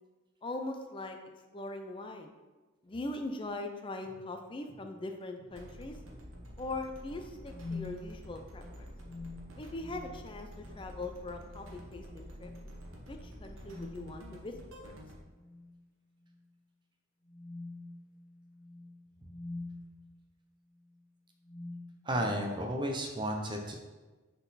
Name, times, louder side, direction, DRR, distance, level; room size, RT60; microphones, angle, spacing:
voice 1, 0.4-1.2 1.5-2.3 2.8-6.0 6.6-8.9 9.6-12.5 13.1-14.5 14.8-14.9, left 2 dB, 25° left, 5 dB, 0.5 m, -41 dB
sound 1, 4.1-4.2 4.7-4.9 5.4-5.9 7.5-8.0 9.0-10.3 10.6-10.9 11.6-12.0 12.3-12.7 13.6-14.2 15.3-15.8 16.2-16.4 17.3-19.8 20.7-21.0 21.4-22.5, left 3 dB, 70° left, 1.2 m, -46 dB
sound 2, 5.5-15.2, equal, 75° right, 1.0 m, -49 dB
voice 2, 22.1-23.8, right 1 dB, 20° right, 2 dB, 0.5 m, -33 dB
5.9 x 3.9 x 4.1 m, 1.2 s
head